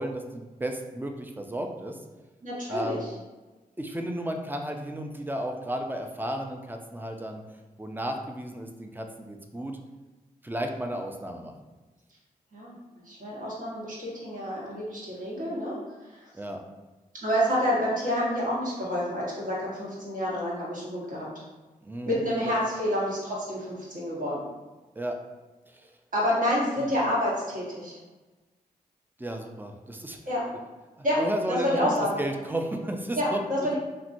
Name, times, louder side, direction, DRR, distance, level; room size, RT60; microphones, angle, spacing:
voice 1, 0.0-2.0 2.7-3.1 3.8-7.4 7.8-9.8 10.4-11.5 16.3-16.6 21.8-22.2 22.4-22.6 25.0-25.2 25.7-25.9 29.2-30.2 31.0-33.4, right 1 dB, 10° right, 4 dB, 0.4 m, -33 dB
voice 2, 2.4-3.1 12.5-12.7 13.0-15.8 16.1-16.3 17.2-21.3 22.0-24.4 26.1-28.0 30.3-30.4 31.0-31.2 31.5-32.2 33.1-33.8, equal, 55° right, -6 dB, 1.2 m, -28 dB
3.0 x 2.5 x 2.5 m, 1.2 s
cardioid pair, 45°, 16 cm